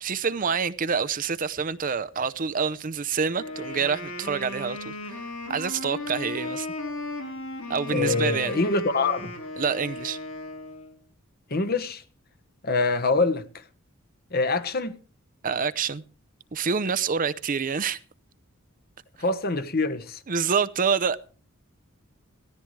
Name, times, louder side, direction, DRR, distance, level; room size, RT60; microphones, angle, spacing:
voice 1, 0.0-5.2 5.5-6.7 7.7-8.6 9.6-10.2 15.4-16.0 16.5-18.0 20.3-21.3, right 6 dB, 40° right, 0.6 m, -27 dB
Wind instrument woodwind instrument, 3.4-11.0, left 2 dB, 75° left, 5.4 m, -36 dB
voice 2, 7.9-9.3 11.5-12.0 12.6-13.4 14.3-15.0 19.2-20.2, left 3 dB, 45° left, 1.2 m, -25 dB
18.0 x 14.0 x 3.2 m
head